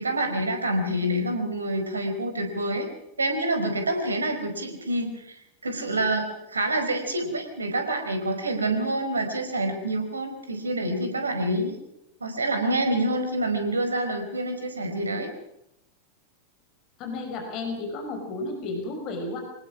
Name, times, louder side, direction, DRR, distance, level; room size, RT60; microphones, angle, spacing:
voice 1, 0.0-2.9 3.2-11.8 12.2-15.3, right 1 dB, 75° right, 6 dB, 4.6 m, -27 dB
voice 2, 17.0-19.4, left 2 dB, 40° left, 4 dB, 5.8 m, -32 dB
25.5 x 19.5 x 6.2 m, 0.80 s
figure-of-eight pair, 90°, 0 cm